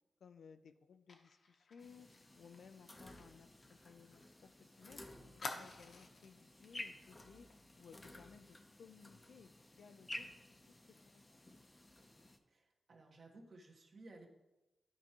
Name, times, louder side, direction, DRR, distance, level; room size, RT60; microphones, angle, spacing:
voice 1, 0.2-2.1 2.3-5.0 5.5-7.5 7.7-9.5 9.8-10.4 10.7-10.8 11.0-11.3, left 6 dB, 75° left, 10 dB, 0.4 m, -60 dB
Fire, 1.1-4.5 4.8-4.9 5.4-6.4 6.8-7.0 7.3-7.5, left 3 dB, 55° left, 0.9 m, -51 dB
sound 1, 1.8-12.4, left 1 dB, 20° left, 0.6 m, -54 dB
voice 2, 12.5-14.3, right 2 dB, 50° right, 0 dB, 1.4 m, -58 dB
12.0 x 4.7 x 2.9 m, 1.0 s
wide cardioid pair, 120°, 0 cm